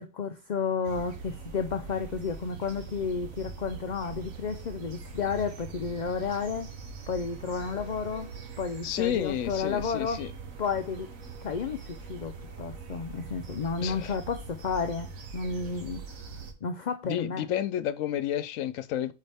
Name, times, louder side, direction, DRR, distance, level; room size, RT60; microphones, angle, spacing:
voice 1, 0.0-6.7 7.1-10.3 10.6-11.1 11.4-16.0 16.6-17.5, left 5 dB, 50° left, 0.5 m, -32 dB
sound 1, 0.8-16.5, right 5 dB, 90° right, 1.5 m, -42 dB
voice 2, 8.8-10.3 13.8-14.1 17.0-19.1, left 11 dB, 80° left, 1.0 m, -31 dB
8.4 x 4.7 x 3.5 m
omnidirectional pair, 1.4 m